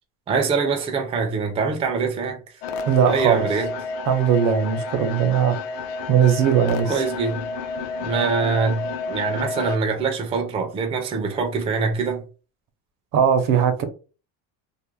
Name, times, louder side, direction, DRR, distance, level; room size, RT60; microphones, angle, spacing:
voice 1, 0.3-2.4 3.1-3.7 6.9-7.4 8.0-12.2, right 5 dB, 15° right, 0.4 m, -24 dB
sound 1, 2.6-9.8, left 4 dB, 65° left, 0.6 m, -30 dB
voice 2, 2.9-3.4 4.1-5.6 6.1-7.0 13.1-13.8, right 8 dB, 65° right, 0.7 m, -19 dB
2.4 x 2.0 x 3.1 m
cardioid pair, 140°, 36 cm